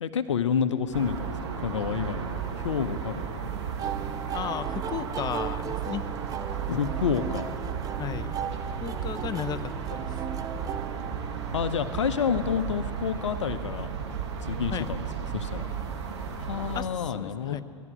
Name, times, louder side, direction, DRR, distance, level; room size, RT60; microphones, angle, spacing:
voice 1, 0.0-3.5 6.7-7.5 11.5-13.9 14.5-15.1 15.3-15.7 16.4-17.6, left 7 dB, 80° left, 12 dB, 0.7 m, -29 dB
sound 1, 0.9-16.8, right 7 dB, 65° right, 1.5 m, -34 dB
sound 2, 3.8-11.7, right 8 dB, 25° right, 0.4 m, -37 dB
voice 2, 4.3-6.0 8.0-8.3 8.8-10.1 14.7-14.9 16.7-16.9 17.1-17.6, left 9 dB, 25° left, 13 dB, 0.6 m, -34 dB
13.0 x 10.0 x 9.6 m, 2.4 s
figure-of-eight pair, 90°, 15 cm